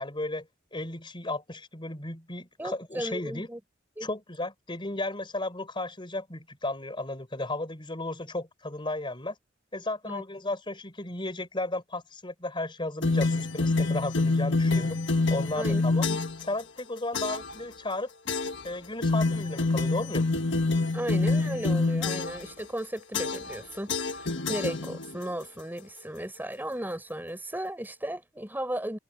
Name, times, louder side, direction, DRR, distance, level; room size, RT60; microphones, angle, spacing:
voice 1, 0.0-3.5 4.0-9.4 9.7-15.0 15.3-16.1 16.4-18.1 18.6-20.3, left 2 dB, 25° left, 4.0 m, -34 dB
voice 2, 2.6-3.6 4.0-4.1 10.0-10.2 15.6-16.2 20.9-29.0, right 1 dB, 10° right, 5.1 m, -35 dB
sound 1, 13.0-16.4 17.1-17.5 18.3-18.7 19.0-22.5 23.1-23.6 23.9-25.2, left 3 dB, 65° left, 1.6 m, -27 dB
head